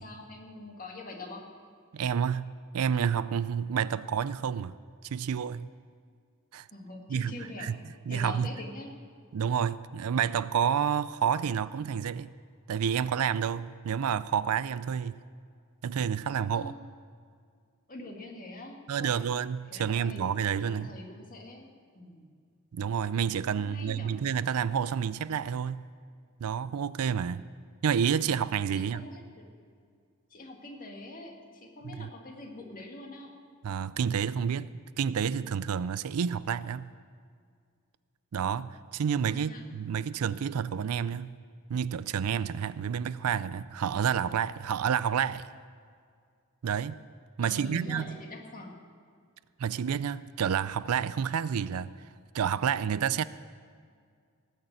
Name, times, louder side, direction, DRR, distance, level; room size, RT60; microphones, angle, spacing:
voice 1, 0.0-1.5 6.7-7.7 8.1-8.9 16.5-16.8 17.9-19.2 19.7-20.2 20.6-21.7 21.9-22.3 23.5-24.1 28.7-29.5 30.3-33.4 39.3-39.6 47.4-48.8, left 2 dB, 40° left, 1.9 m, -44 dB
voice 2, 1.9-4.8 5.1-5.7 6.5-6.7 7.1-7.8 8.1-8.5 9.3-12.3 12.7-15.2 15.8-16.7 18.9-20.9 22.7-25.8 26.4-27.4 27.8-29.0 31.8-32.1 33.6-34.7 35.0-36.9 38.3-41.3 41.7-45.5 46.6-47.0 47.4-48.2 49.6-51.9 52.3-53.2, right 7 dB, 75° right, 0.4 m, -29 dB
18.5 x 6.6 x 7.8 m
head